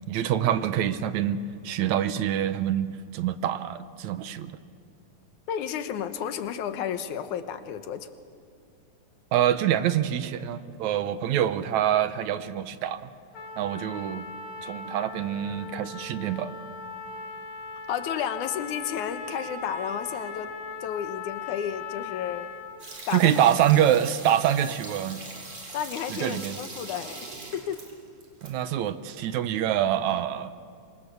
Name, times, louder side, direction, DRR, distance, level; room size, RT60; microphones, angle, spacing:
voice 1, 0.0-4.6 9.3-13.1 13.6-14.3 14.6-16.5 23.1-25.3 26.1-26.6 28.4-30.5, right 10 dB, 75° right, 12 dB, 2.1 m, -25 dB
voice 2, 5.5-8.1 17.9-20.5 20.8-22.5 23.1-23.4 25.7-27.8, left 8 dB, 80° left, 9 dB, 2.6 m, -32 dB
Trumpet, 13.3-22.8, left 5 dB, 30° left, 2.5 m, -39 dB
sound 1, 22.8-28.5 28.8-28.9, right 3 dB, 60° right, 5.1 m, -41 dB
26.5 x 25.0 x 6.9 m, 2.3 s
omnidirectional pair, 3.4 m